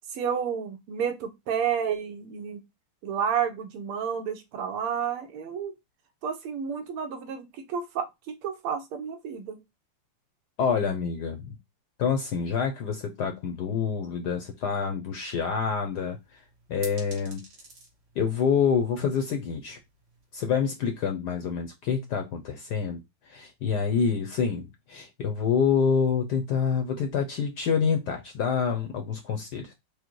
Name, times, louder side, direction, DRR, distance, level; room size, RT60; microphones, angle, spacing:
voice 1, 0.1-2.6 3.0-5.7 6.2-9.6, right 7 dB, 80° right, 1.8 m, -31 dB
voice 2, 10.6-11.6 12.0-16.4 16.7-17.4 18.2-19.8 20.3-23.0 23.3-29.7, left 6 dB, 70° left, 1.0 m, -27 dB
sound 1, 15.9-21.1, right 3 dB, 50° right, 2.2 m, -51 dB
5.1 x 2.2 x 4.5 m
omnidirectional pair, 2.4 m